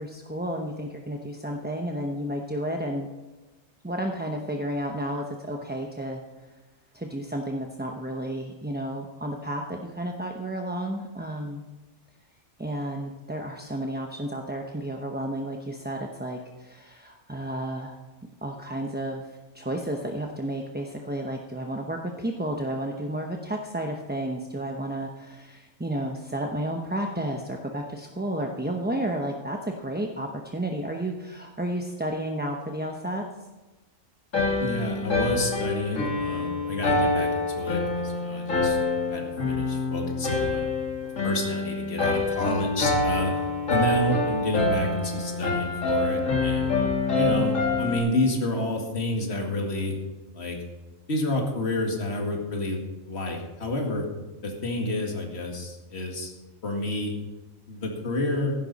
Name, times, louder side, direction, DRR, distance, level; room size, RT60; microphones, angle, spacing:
voice 1, 0.0-3.1 3.8-6.2 6.9-11.6 12.6-18.0 18.4-33.2, right 1 dB, 10° right, 1 dB, 0.7 m, -32 dB
sound 1, 34.3-48.0, left 3 dB, 70° left, 2.7 m, -26 dB
voice 2, 34.6-38.8 39.1-40.7 41.2-43.3 43.7-46.7 47.1-50.0 50.3-50.6 51.1-52.8 53.1-54.1 54.4-56.3 56.6-57.1 57.7-58.5, left 1 dB, 50° left, 1 dB, 2.3 m, -29 dB
15.5 x 11.0 x 4.1 m, 1.2 s
omnidirectional pair, 1.4 m